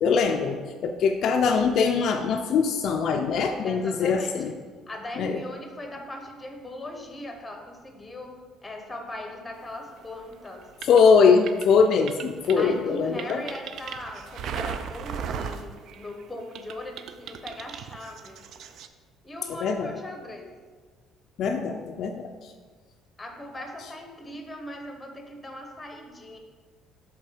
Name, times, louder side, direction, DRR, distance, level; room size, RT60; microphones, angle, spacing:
voice 1, 0.0-4.5 5.2-5.4 10.9-13.4 19.6-19.9 21.4-22.3, left 5 dB, 50° left, 4 dB, 0.4 m, -22 dB
voice 2, 3.6-4.5 4.9-8.4 8.6-10.6 12.6-18.4 19.2-20.5 23.2-26.4, left 1 dB, 10° left, 3 dB, 0.8 m, -39 dB
sound 1, 10.0-16.2 16.5-18.9, right 7 dB, 50° right, 0.4 m, -37 dB
7.6 x 3.6 x 4.9 m, 1.5 s
cardioid pair, 160°, 0 cm